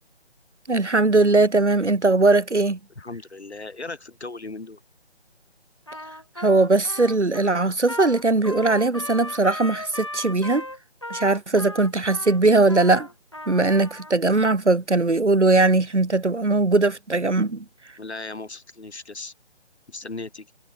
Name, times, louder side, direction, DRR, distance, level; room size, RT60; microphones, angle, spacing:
voice 1, 0.7-2.8 6.4-10.6 11.1-13.1 13.5-17.6, right 3 dB, 85° right, 1.3 m, -20 dB
voice 2, 3.0-4.8 18.0-19.3 19.9-20.5, left 3 dB, 70° left, 2.2 m, -37 dB
Trumpet, 5.9-14.1, left 1 dB, 25° left, 0.5 m, -37 dB
figure-of-eight pair, 150°, 34 cm